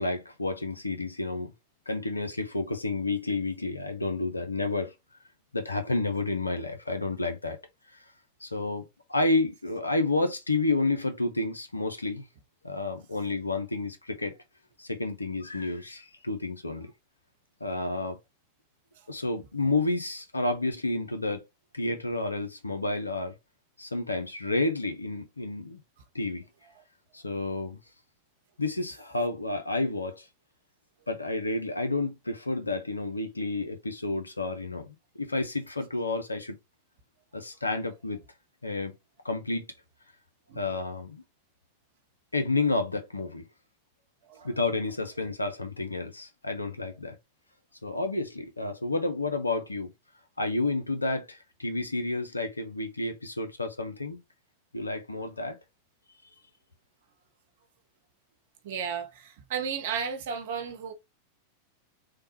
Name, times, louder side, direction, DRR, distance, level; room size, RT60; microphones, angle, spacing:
voice 1, 0.0-1.5 1.9-4.9 5.5-7.6 8.4-12.2 12.6-14.4 14.8-16.9 17.6-18.2 19.1-21.4 21.7-23.3 23.8-25.8 26.1-26.4 27.1-27.8 28.6-30.3 31.1-34.9 35.1-36.6 37.3-38.2 38.6-39.0 39.2-39.6 40.5-41.2 42.3-43.5 44.4-47.2 47.8-49.9 50.4-54.2 54.7-55.6, left 2 dB, 80° left, 0.5 m, -30 dB
voice 2, 58.6-60.9, right 7 dB, 55° right, 0.6 m, -34 dB
3.2 x 2.1 x 2.9 m
figure-of-eight pair, 90°, 0 cm